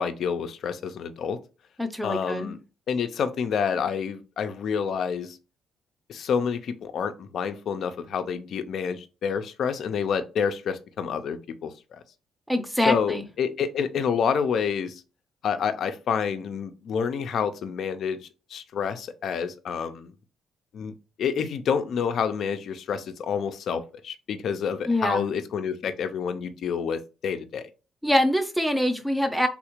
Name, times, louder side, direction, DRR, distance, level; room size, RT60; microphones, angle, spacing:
voice 1, 0.0-1.4 2.0-2.6 2.9-5.4 6.1-12.0 12.9-15.0 15.4-18.2 18.5-20.1 20.7-27.7, left 7 dB, 65° left, 9 dB, 0.4 m, -28 dB
voice 2, 1.8-2.5 12.5-13.2 24.9-25.3 28.0-29.5, left 1 dB, 5° right, 8 dB, 0.6 m, -24 dB
3.5 x 2.4 x 2.9 m, 0.32 s
cardioid pair, 90°, 0 cm